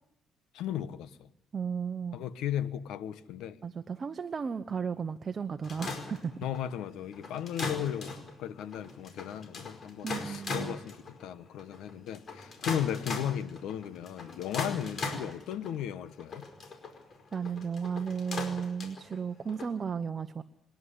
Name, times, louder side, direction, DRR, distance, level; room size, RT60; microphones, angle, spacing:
voice 1, 0.5-1.3 2.1-3.6 6.4-8.1 8.4-16.4, left 10 dB, 90° left, 1.2 m, -36 dB
voice 2, 1.5-2.2 3.6-6.3 10.0-10.8 17.3-20.4, right 6 dB, 35° right, 0.9 m, -34 dB
sound 1, 5.6-19.7, left 3 dB, 45° left, 4.8 m, -39 dB
26.5 x 11.0 x 9.9 m
cardioid pair, 110°, 0 cm